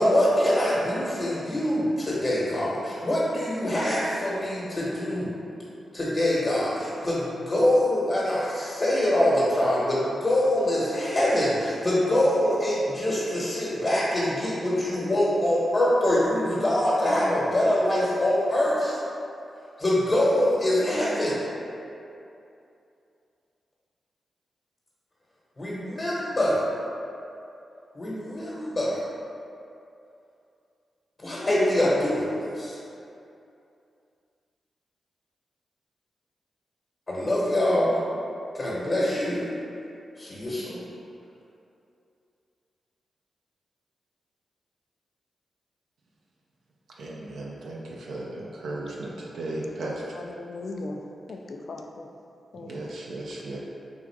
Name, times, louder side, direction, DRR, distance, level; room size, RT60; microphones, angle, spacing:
voice 1, 0.0-5.3 5.9-19.0 19.8-21.4 25.6-26.6 27.9-29.0 31.2-32.8 37.1-38.0 38.5-39.5 40.2-40.8, left 1 dB, 40° left, -8 dB, 1.0 m, -24 dB
voice 2, 47.0-50.2 52.5-53.6, right 2 dB, 85° right, -4 dB, 0.4 m, -35 dB
voice 3, 49.8-51.0 51.3-52.1 52.5-52.9, left 2 dB, 65° left, 3 dB, 0.3 m, -38 dB
3.6 x 2.5 x 4.5 m, 2.7 s
cardioid pair, 65°, 0 cm